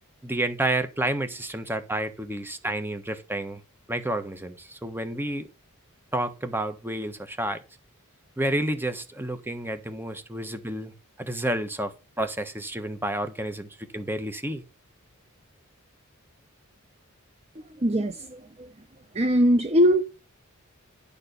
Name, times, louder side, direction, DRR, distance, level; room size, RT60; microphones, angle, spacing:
voice 1, 0.2-3.6 3.9-5.5 6.1-7.6 8.4-10.9 11.2-14.6, right 1 dB, 10° right, 1.2 m, -30 dB
voice 2, 17.8-18.7 19.1-20.0, equal, 30° right, 0.8 m, -21 dB
10.5 x 4.4 x 6.7 m
head